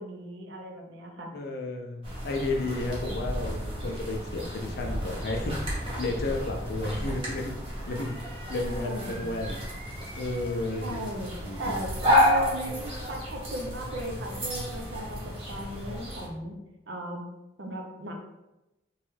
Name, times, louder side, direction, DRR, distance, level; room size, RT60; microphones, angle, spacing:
voice 1, 0.0-1.3 8.6-9.3 10.8-11.3 11.6-16.6 16.9-17.3 17.6-18.1, equal, 65° right, 2 dB, 0.5 m, -37 dB
voice 2, 1.3-7.6 7.9-9.6 10.2-11.0 11.4-11.7, left 2 dB, 55° left, 2 dB, 0.5 m, -32 dB
sound 1, 2.0-16.3, equal, 30° right, 0.9 m, -31 dB
3.1 x 2.3 x 3.1 m, 0.96 s
head